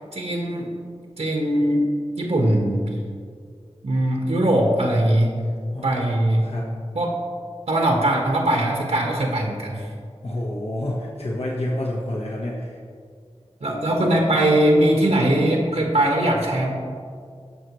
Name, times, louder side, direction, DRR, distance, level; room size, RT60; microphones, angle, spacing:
voice 1, 0.1-0.7 1.2-1.8 2.2-2.8 3.8-5.3 5.8-6.4 6.9-7.1 7.7-9.8 13.6-16.7, right 1 dB, 80° right, 0 dB, 1.6 m, -20 dB
voice 2, 5.7-6.7 10.2-12.8, left 1 dB, 65° left, -3 dB, 1.4 m, -29 dB
19.0 x 6.3 x 3.2 m, 2.1 s
wide cardioid pair, 70°, 11 cm